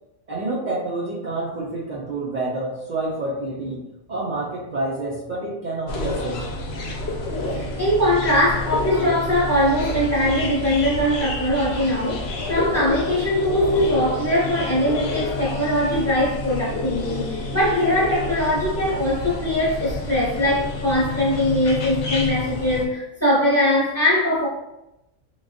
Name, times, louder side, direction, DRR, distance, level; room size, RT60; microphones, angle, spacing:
voice 1, 0.3-6.5, right 2 dB, 90° right, -5 dB, 0.4 m, -28 dB
sound 1, 5.9-22.8, left 2 dB, 65° left, 0.7 m, -29 dB
voice 2, 7.5-24.5, left 1 dB, 15° left, -7 dB, 0.6 m, -21 dB
3.3 x 2.2 x 2.5 m, 0.90 s
omnidirectional pair, 1.4 m